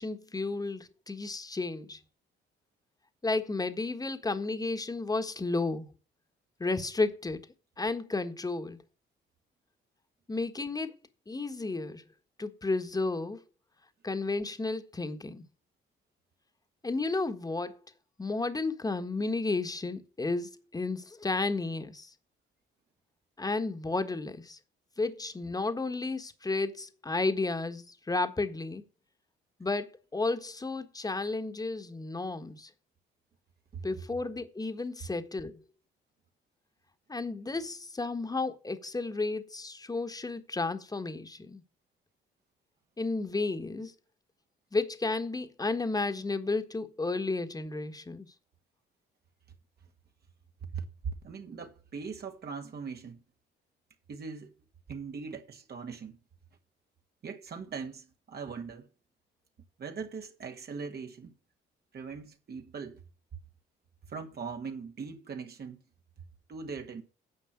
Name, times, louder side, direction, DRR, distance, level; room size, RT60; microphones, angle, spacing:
voice 1, 0.0-2.0 3.2-5.9 6.6-7.4 7.8-8.8 10.3-10.9 11.3-12.0 12.4-13.4 14.0-15.4 16.8-17.8 18.2-22.1 23.4-24.6 25.0-28.8 29.6-32.7 33.8-35.6 37.1-41.6 43.0-43.9 44.7-48.3, left 3 dB, 20° left, 1.5 m, -32 dB
voice 2, 50.6-53.2 54.1-54.5 54.9-56.2 57.2-58.9 59.8-61.3 61.9-63.0 64.1-65.8 66.5-67.0, right 5 dB, 55° right, 1.7 m, -40 dB
9.8 x 5.9 x 7.3 m
cardioid pair, 90°, 20 cm